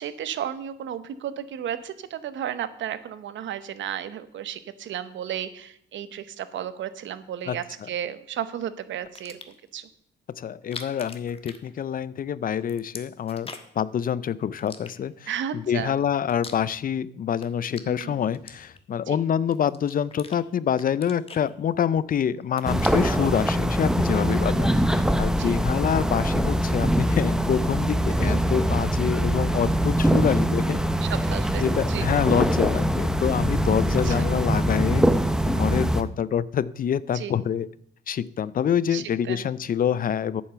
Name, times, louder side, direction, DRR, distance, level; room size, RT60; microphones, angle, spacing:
voice 1, 0.0-9.9 15.3-16.0 17.9-18.2 19.1-19.2 24.3-24.6 25.4-25.5 28.0-28.5 31.0-32.1 34.0-34.2 37.1-37.4 38.9-39.5, right 10 dB, 70° right, 13 dB, 0.9 m, -34 dB
sound 1, 9.0-9.7 10.5-12.2 12.5-13.9 14.6-15.4 15.9-17.0 17.3-19.0 19.5-20.4 20.7-22.1 22.4-23.3, left 4 dB, 30° left, 1.3 m, -43 dB
voice 2, 10.4-13.5 13.8-30.8 31.6-35.1 35.5-37.7 38.1-40.4, left 8 dB, 45° left, 18 dB, 0.5 m, -26 dB
sound 2, 22.6-36.0, equal, 5° right, 0.7 m, -23 dB
9.3 x 7.2 x 6.8 m, 0.68 s
cardioid pair, 90°, 20 cm